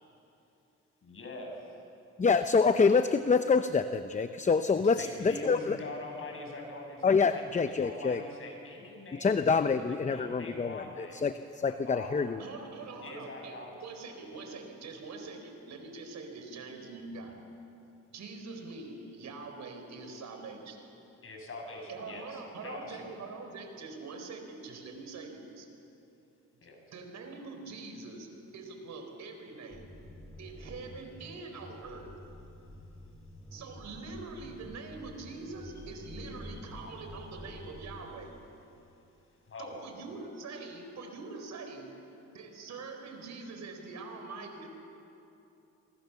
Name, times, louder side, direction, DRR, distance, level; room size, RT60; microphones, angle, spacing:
voice 1, 1.0-1.5 4.7-9.4 9.7-11.2 11.7-12.4 13.0-13.7 21.2-23.2 26.6-26.8 39.5-39.8, left 2 dB, 45° left, 1 dB, 7.3 m, -44 dB
voice 2, 2.2-5.8 7.0-8.2 9.2-12.4, left 5 dB, 25° left, 10 dB, 0.8 m, -26 dB
voice 3, 12.4-17.4 18.1-20.8 21.9-25.7 26.9-29.8 30.4-32.1 33.5-38.3 39.6-42.0 42.3-44.7, right 3 dB, 65° right, 5 dB, 4.4 m, -44 dB
sound 1, 29.7-38.5, left 1 dB, ahead, 5.1 m, -49 dB
26.0 x 24.5 x 7.1 m, 2.8 s
cardioid pair, 90°, 30 cm